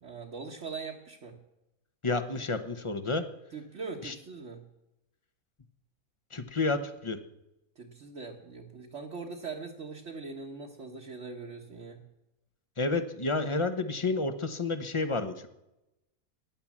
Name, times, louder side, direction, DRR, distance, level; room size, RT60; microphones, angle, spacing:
voice 1, 0.0-1.4 3.5-4.7 7.8-12.1, right 4 dB, 50° right, 0 dB, 1.5 m, -41 dB
voice 2, 2.0-3.2 4.0-4.1 6.3-7.2 12.8-15.5, left 3 dB, 25° left, 10 dB, 0.9 m, -30 dB
16.0 x 10.5 x 7.3 m, 0.93 s
omnidirectional pair, 1.6 m